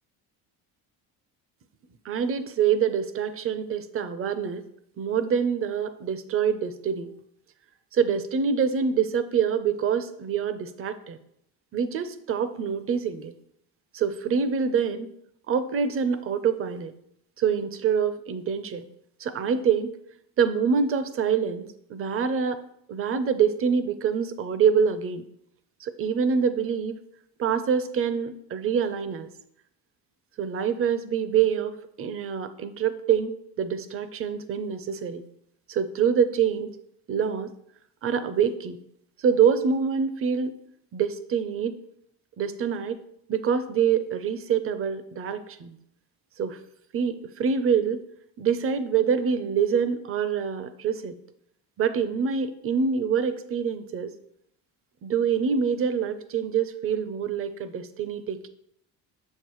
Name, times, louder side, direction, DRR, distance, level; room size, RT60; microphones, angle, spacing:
voice 1, 2.0-4.6 5.0-7.1 7.9-11.2 11.7-13.3 13.9-15.1 15.5-16.9 17.4-18.9 19.2-19.9 20.4-22.6 22.9-25.2 25.8-27.0 27.4-29.3 30.4-33.3 33.6-35.2 35.7-36.7 37.1-37.5 38.0-38.8 39.2-40.5 40.9-41.8 42.4-43.0 43.3-45.8 46.4-46.6 46.9-48.0 48.4-51.2 51.8-54.1 55.0-58.5, right 7 dB, 35° right, 12 dB, 0.5 m, -25 dB
6.6 x 6.5 x 3.0 m, 0.75 s
cardioid pair, 125°, 39 cm